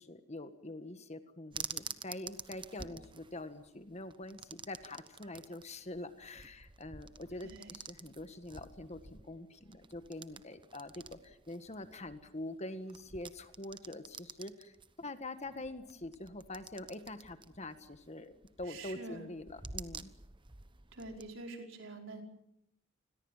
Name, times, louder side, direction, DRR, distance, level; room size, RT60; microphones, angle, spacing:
voice 1, 0.0-20.1, left 2 dB, 35° left, 9 dB, 1.7 m, -45 dB
sound 1, 1.5-21.3, right 5 dB, 25° right, 1.1 m, -50 dB
voice 2, 7.4-7.7 18.7-19.2 20.9-22.2, right 2 dB, 70° right, 3 dB, 5.3 m, -46 dB
28.5 x 21.5 x 7.4 m, 0.79 s
head